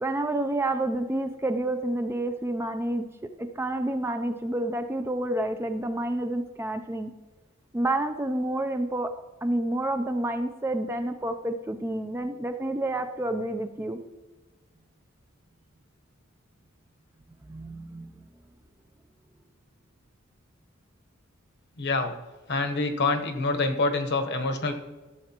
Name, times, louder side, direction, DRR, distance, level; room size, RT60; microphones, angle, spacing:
voice 1, 0.0-3.1 3.4-7.1 7.7-9.1 9.4-14.0 17.5-18.3, right 1 dB, 10° right, 7 dB, 0.4 m, -29 dB
voice 2, 21.8-22.1 22.5-24.7, left 3 dB, 50° left, 6 dB, 1.0 m, -26 dB
14.0 x 7.5 x 2.9 m, 1.2 s
head